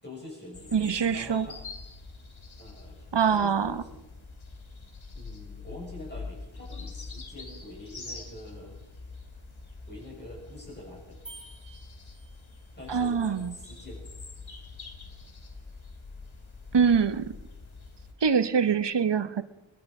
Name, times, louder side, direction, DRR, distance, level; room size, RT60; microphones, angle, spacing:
voice 1, 0.0-1.6 2.6-4.0 5.1-8.7 9.9-11.2 12.8-14.0, left 1 dB, 20° left, 7.0 m, -45 dB
sound 1, 0.5-18.1, left 3 dB, 90° left, 2.5 m, -45 dB
voice 2, 0.7-1.5 3.1-3.8 12.9-13.5 16.7-17.3 18.2-19.4, right 6 dB, 60° right, 1.0 m, -24 dB
sound 2, 11.3-12.8, right 3 dB, 30° right, 3.4 m, -50 dB
22.0 x 21.5 x 5.5 m
wide cardioid pair, 50°, 46 cm